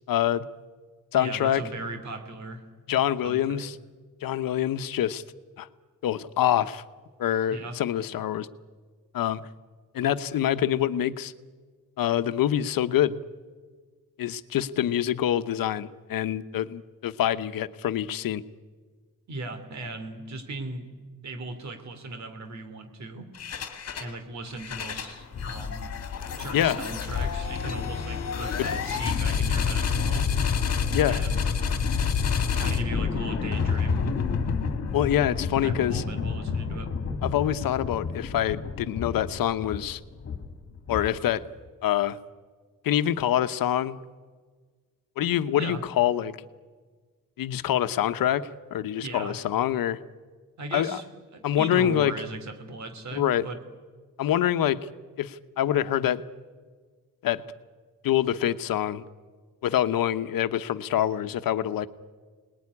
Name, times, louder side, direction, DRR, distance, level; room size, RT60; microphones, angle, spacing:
voice 1, 0.1-0.5 1.1-1.6 2.9-3.8 4.2-5.2 5.6-5.7 6.0-6.8 7.2-8.5 9.1-9.5 9.9-11.3 12.0-13.2 14.2-18.4 26.5-26.8 28.6-28.7 30.9-31.2 34.9-36.0 37.2-40.0 40.9-41.4 41.8-42.2 42.8-44.0 45.2-46.4 47.4-50.0 50.7-51.0 51.4-52.1 53.1-53.5 54.2-54.9 55.2-56.2 57.2-57.4 58.0-59.0 59.6-61.9, left 11 dB, 85° left, 12 dB, 1.0 m, -25 dB
voice 2, 1.1-2.6 3.2-3.6 7.5-7.8 19.3-20.9 21.2-23.3 24.0-25.9 26.4-30.3 31.1-31.4 32.5-34.1 35.6-36.9 45.5-45.8 49.0-49.4 50.6-53.6, right 2 dB, 55° right, 8 dB, 3.1 m, -38 dB
sound 1, 23.3-24.1 24.5-41.4, left 6 dB, 45° left, 2.1 m, -29 dB
28.0 x 20.0 x 9.8 m, 1.5 s
wide cardioid pair, 175°, 33 cm